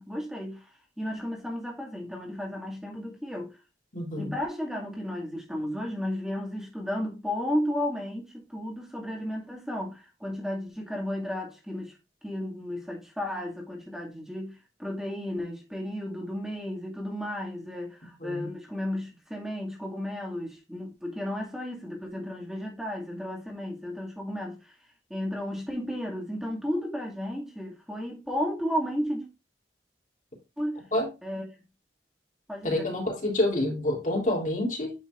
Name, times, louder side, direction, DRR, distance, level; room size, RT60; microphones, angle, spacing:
voice 1, 0.0-3.6 4.1-12.0 12.2-24.7 25.1-29.3 30.6-30.8 31.2-31.5 32.5-32.9, left 1 dB, 5° right, 2.1 m, -33 dB
voice 2, 3.9-4.3 18.2-18.5 30.9-31.1 32.6-34.9, left 1 dB, 45° left, 3.3 m, -27 dB
9.6 x 5.9 x 2.5 m
head